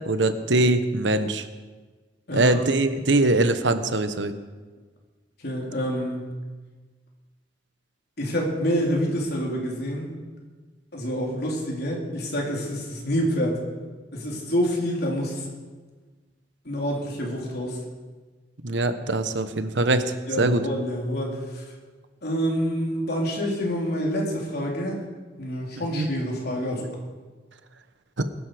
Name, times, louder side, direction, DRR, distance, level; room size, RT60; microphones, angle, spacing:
voice 1, 0.0-1.4 2.3-4.3 18.6-20.0 20.4-20.6 25.9-26.1, right 2 dB, 85° right, 9 dB, 1.2 m, -22 dB
voice 2, 2.3-2.6 5.4-6.3 8.2-10.1 10.9-13.6 14.1-15.5 16.6-17.8 20.3-21.6 22.2-25.0 25.4-26.9, equal, 60° left, -2 dB, 4.0 m, -27 dB
21.0 x 12.0 x 5.1 m, 1.4 s
head